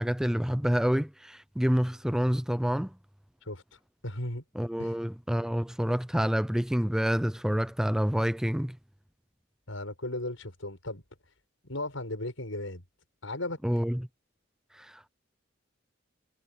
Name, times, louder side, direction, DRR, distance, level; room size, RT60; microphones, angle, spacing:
voice 1, 0.0-2.9 4.6-8.8 13.6-14.1 14.7-15.1, equal, 5° right, 0.4 m, -28 dB
voice 2, 4.0-4.4 4.8-4.9 9.7-11.0 11.6-12.8 13.2-13.6, left 1 dB, 85° left, 7.1 m, -36 dB
head